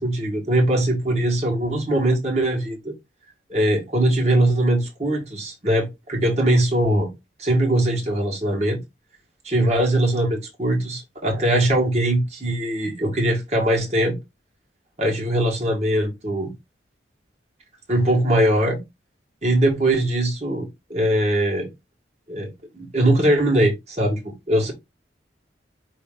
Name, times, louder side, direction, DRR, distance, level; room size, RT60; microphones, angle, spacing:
voice 1, 0.0-2.9 3.5-7.1 7.4-8.8 9.4-14.1 15.0-16.5 17.9-18.8 19.4-21.7 22.3-24.7, right 1 dB, 35° right, 1.4 m, -21 dB
5.2 x 2.8 x 3.6 m
head